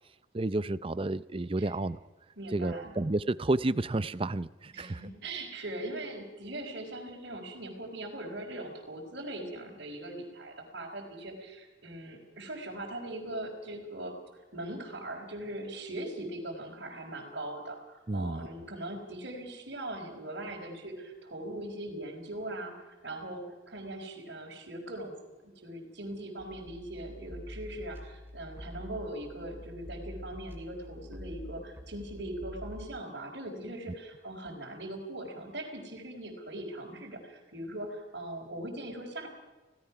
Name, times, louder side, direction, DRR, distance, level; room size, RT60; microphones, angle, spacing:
voice 1, 0.3-2.0 2.5-5.0 18.1-18.5, right 2 dB, 30° right, 16 dB, 0.6 m, -31 dB
voice 2, 2.4-2.9 4.7-25.1 25.4-39.3, right 1 dB, 55° right, -6 dB, 4.2 m, -40 dB
sound 1, 26.4-32.9, left 1 dB, 10° right, 2.5 m, -46 dB
29.0 x 17.0 x 5.9 m, 1.2 s
head